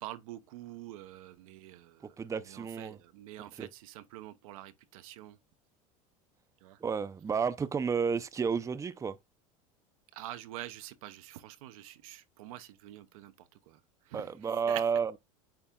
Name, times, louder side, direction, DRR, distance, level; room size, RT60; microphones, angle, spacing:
voice 1, 0.0-2.2 2.4-5.4 6.6-6.8 10.1-13.8 14.1-14.3 14.7-14.8, right 14 dB, 80° right, 0.9 m, -46 dB
voice 2, 2.2-3.0 3.6-3.7 6.8-9.2 14.1-15.2, right 6 dB, 20° right, 0.6 m, -31 dB
8.8 x 3.5 x 3.7 m
supercardioid pair, 105°, 18 cm